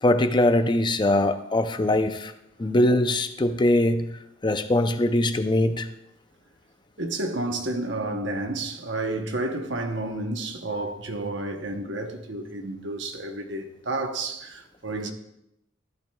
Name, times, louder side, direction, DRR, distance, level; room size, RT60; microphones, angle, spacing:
voice 1, 0.0-2.3 2.6-4.1 4.4-5.9, left 1 dB, 25° left, 0.5 m, -22 dB
voice 2, 7.0-15.1, right 2 dB, 60° right, 0.9 m, -31 dB
13.5 x 12.0 x 2.3 m
head